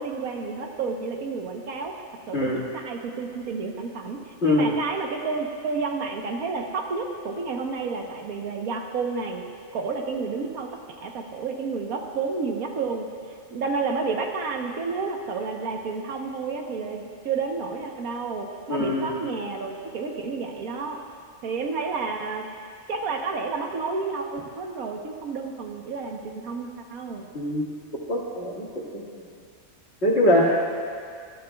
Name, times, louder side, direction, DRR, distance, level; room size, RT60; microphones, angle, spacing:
voice 1, 0.0-1.9 2.3-9.4 9.7-10.7 11.0-13.1 13.5-21.0 21.4-22.5 22.9-27.3, right 4 dB, 90° right, 2 dB, 1.5 m, -30 dB
voice 2, 18.7-19.2 27.3-27.7 28.1-28.7 30.0-30.6, left 1 dB, 50° left, -4 dB, 2.3 m, -22 dB
19.5 x 12.5 x 2.3 m, 2.2 s
omnidirectional pair, 1.4 m